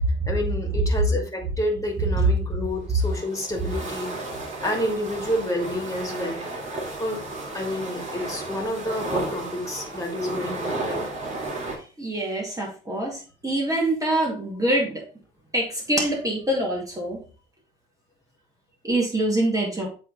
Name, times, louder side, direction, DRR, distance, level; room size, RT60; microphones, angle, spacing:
voice 1, 0.3-4.1 4.6-6.4 7.0-7.2 7.5-11.0, left 1 dB, 15° left, 1 dB, 2.4 m, -29 dB
sound 1, 2.8-11.8, right 2 dB, 35° right, 2.6 m, -33 dB
voice 2, 12.0-15.0 15.5-17.2 18.8-19.9, right 1 dB, 15° right, -2 dB, 2.2 m, -25 dB
7.6 x 3.7 x 4.0 m, 0.37 s
cardioid pair, 90°, 20 cm